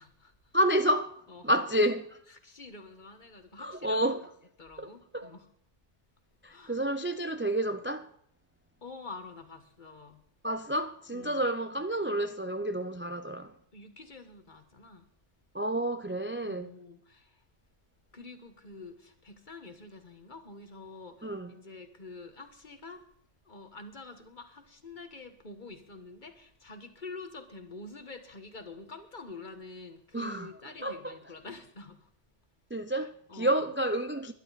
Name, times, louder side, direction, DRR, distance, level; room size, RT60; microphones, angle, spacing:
voice 1, 0.0-0.5 1.3-1.6 2.3-4.2 4.6-5.5 6.4-6.8 8.8-10.2 11.1-11.4 13.7-15.1 16.4-17.4 18.1-23.0 23.4-32.1 33.0-33.6, left 3 dB, 40° left, 1.7 m, -47 dB
voice 2, 0.5-1.2 1.4-2.2 3.6-4.3 4.8-5.3 6.4-8.1 10.4-13.5 15.5-16.7 21.2-21.5 30.1-30.5 30.8-31.1 32.7-34.3, right 1 dB, 15° right, 0.5 m, -30 dB
20.5 x 12.0 x 4.2 m
omnidirectional pair, 1.2 m